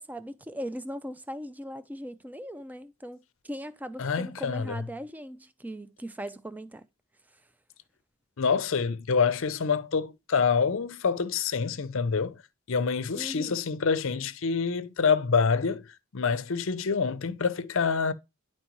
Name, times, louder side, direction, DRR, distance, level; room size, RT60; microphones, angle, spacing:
voice 1, 0.0-6.8 7.3-7.4 13.1-13.6, equal, 5° right, 0.3 m, -39 dB
voice 2, 4.0-4.7 8.4-12.4 12.7-18.1, left 5 dB, 60° left, 0.5 m, -26 dB
10.5 x 4.3 x 3.1 m
head